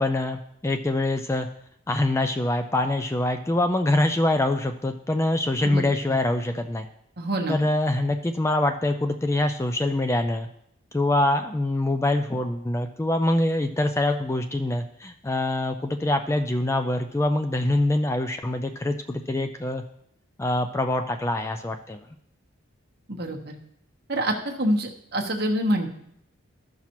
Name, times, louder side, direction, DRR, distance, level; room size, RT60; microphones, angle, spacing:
voice 1, 0.0-1.5 1.9-6.9 7.5-10.5 10.9-19.8 20.4-22.0, left 1 dB, 15° left, 7 dB, 0.3 m, -24 dB
voice 2, 5.6-5.9 7.2-7.7 23.1-23.6 24.1-25.9, right 1 dB, 50° right, 2 dB, 1.1 m, -26 dB
14.0 x 5.7 x 3.0 m, 0.74 s
head